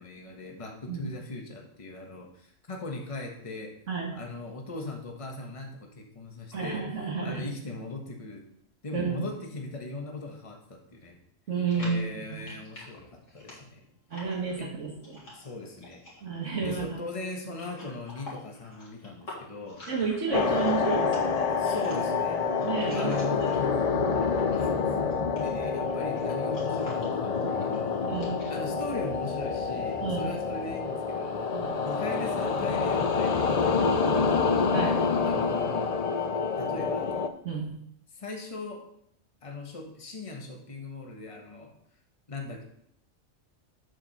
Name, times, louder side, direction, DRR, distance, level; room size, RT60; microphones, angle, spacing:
voice 1, 0.0-3.7 4.1-8.4 8.8-11.2 11.7-13.8 14.6-14.7 15.3-16.0 16.6-19.8 21.6-22.5 22.9-28.0 28.5-31.5 31.8-34.7 35.2-35.9 36.6-37.1 38.1-38.9 39.4-41.7 42.3-42.6, left 3 dB, 25° left, 2 dB, 1.3 m, -39 dB
voice 2, 6.5-7.5 8.9-9.3 11.5-12.5 14.1-15.2 16.2-17.0 19.9-21.5 22.6-24.0 28.1-28.4 30.0-30.3 31.5-31.8 34.7-35.0 37.4-37.7, right 5 dB, 70° right, -3 dB, 2.1 m, -31 dB
sound 1, 11.6-23.8 24.1-28.8, left 2 dB, 75° left, 2.7 m, -48 dB
sound 2, 20.3-37.3, left 5 dB, 55° left, 0.4 m, -27 dB
7.7 x 4.9 x 6.0 m, 0.70 s
omnidirectional pair, 1.3 m